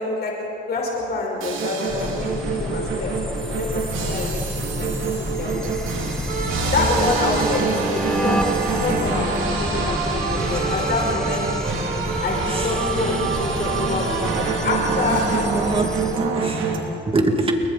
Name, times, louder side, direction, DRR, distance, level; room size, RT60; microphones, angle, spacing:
voice 1, 0.0-3.1 3.5-5.7 6.7-8.4 8.8-11.5 12.2-15.4 15.8-15.9, left 3 dB, 55° left, -1 dB, 5.0 m, -27 dB
sound 1, 1.4-16.8, right 4 dB, 80° right, 3.1 m, -26 dB
sound 2, 1.9-16.2, equal, 5° left, 1.6 m, -29 dB
voice 2, 10.5-10.8 12.5-12.9 14.9-17.6, right 2 dB, 25° right, 3 dB, 2.7 m, -26 dB
29.5 x 22.5 x 4.3 m, 2.5 s
cardioid pair, 90°, 20 cm